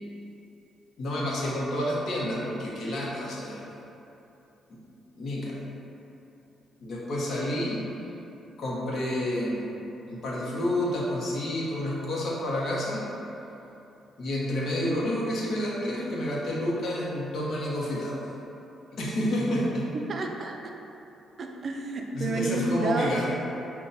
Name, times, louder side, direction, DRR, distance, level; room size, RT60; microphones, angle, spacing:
voice 1, 1.0-3.7 4.7-4.8 5.2-5.6 6.8-7.9 8.6-9.6 10.1-13.0 14.2-18.2 18.9-19.9 22.1-23.4, left 1 dB, 60° left, -4 dB, 0.8 m, -29 dB
voice 2, 20.1-20.7 21.4-23.2, right 2 dB, 50° right, 2 dB, 0.4 m, -30 dB
5.4 x 2.2 x 2.6 m, 2.9 s
cardioid pair, 90°, 0 cm